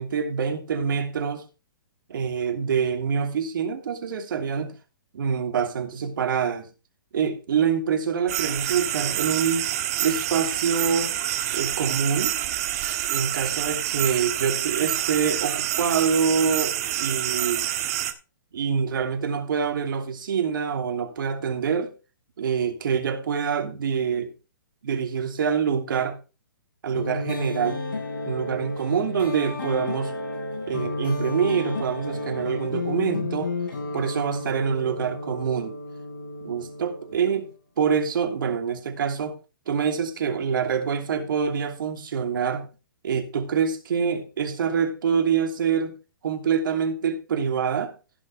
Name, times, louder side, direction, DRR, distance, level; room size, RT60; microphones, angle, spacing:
voice 1, 0.0-1.4 2.1-4.7 5.1-6.7 7.1-9.7 10.0-11.1 11.5-12.3 13.1-17.7 18.5-21.9 22.4-24.3 24.8-26.2 26.8-27.8 28.3-30.1 30.7-33.5 33.9-35.7 36.4-37.5 37.8-39.4 39.7-42.7 43.0-45.9 46.2-47.9, right 6 dB, 70° right, 2.8 m, -25 dB
sound 1, 8.3-18.1, right 12 dB, 45° right, 1.6 m, -27 dB
sound 2, 26.9-37.5, left 2 dB, 75° left, 7.6 m, -32 dB
16.0 x 5.9 x 4.3 m
hypercardioid pair, 150°, 12 cm